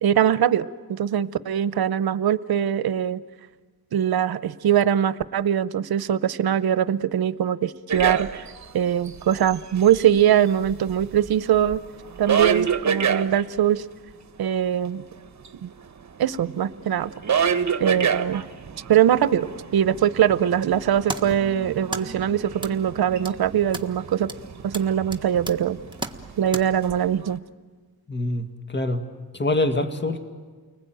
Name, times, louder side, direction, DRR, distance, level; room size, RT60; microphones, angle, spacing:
voice 1, 0.0-3.2 3.9-8.5 8.7-11.8 12.2-13.8 14.4-15.0 15.6-15.7 16.2-17.1 17.8-18.5 18.9-24.3 24.6-25.8 26.4-27.4, right 10 dB, 80° right, 15 dB, 0.7 m, -22 dB
sound 1, 7.9-8.7 9.1-10.2 10.6-13.4 15.4-15.5 15.7-27.4, right 7 dB, 50° right, 1.2 m, -29 dB
sound 2, 20.7-26.6, right 2 dB, 15° right, 1.4 m, -37 dB
voice 2, 28.1-29.0 29.3-30.2, left 2 dB, 30° left, 7 dB, 1.9 m, -25 dB
30.0 x 20.5 x 9.1 m, 1.5 s
cardioid pair, 85°, 36 cm